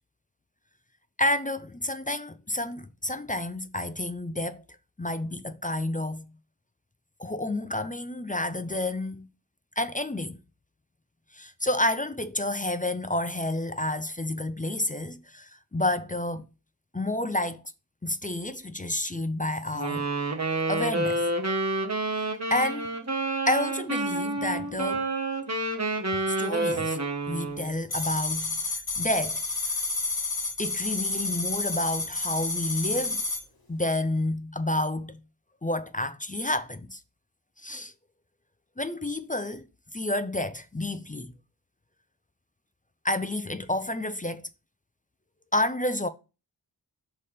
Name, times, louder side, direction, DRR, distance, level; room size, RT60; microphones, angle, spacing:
voice 1, 1.2-4.6 5.0-6.3 7.2-9.3 9.8-10.4 11.3-16.4 16.9-17.6 18.0-20.1 20.7-21.2 22.5-22.9 23.5-25.1 26.3-27.0 27.3-28.6 29.0-29.4 30.6-33.2 33.7-35.2 35.6-37.0 37.6-37.9 38.8-39.7 39.9-41.3 43.0-44.5 45.5-46.1, left 1 dB, 20° left, 0.5 m, -29 dB
Wind instrument woodwind instrument, 19.7-27.7, right 2 dB, 40° right, 1.5 m, -29 dB
sound 1, 27.9-33.4, left 3 dB, 60° left, 1.9 m, -30 dB
5.4 x 4.2 x 5.0 m
wide cardioid pair, 55°, 42 cm